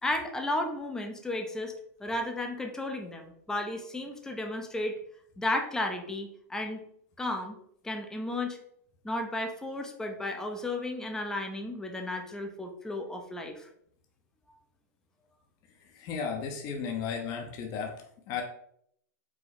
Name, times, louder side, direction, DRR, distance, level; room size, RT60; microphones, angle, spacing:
voice 1, 0.0-1.7 2.0-4.9 5.4-6.8 7.2-7.6 7.8-8.6 9.0-13.7, left 1 dB, 5° left, 3 dB, 0.6 m, -33 dB
voice 2, 15.9-18.4, left 6 dB, 40° left, 2 dB, 0.7 m, -35 dB
4.8 x 2.1 x 4.1 m, 0.69 s
hypercardioid pair, 130°, 9 cm